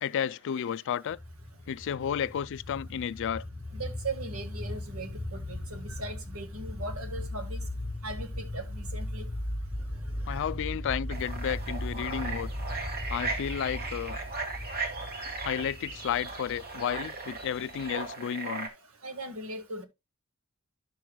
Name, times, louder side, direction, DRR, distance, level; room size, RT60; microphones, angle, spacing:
voice 1, 0.0-1.2 1.7-3.5 10.3-12.5 13.1-14.2 15.4-18.7, left 8 dB, 60° left, 0.3 m, -32 dB
sound 1, 1.1-18.1, left 1 dB, 5° left, 1.3 m, -38 dB
voice 2, 3.7-7.6 8.0-9.3 10.3-10.4 19.0-19.8, right 2 dB, 75° right, 1.6 m, -39 dB
sound 2, 11.1-18.7, right 3 dB, 45° right, 1.7 m, -37 dB
12.0 x 6.2 x 2.2 m
head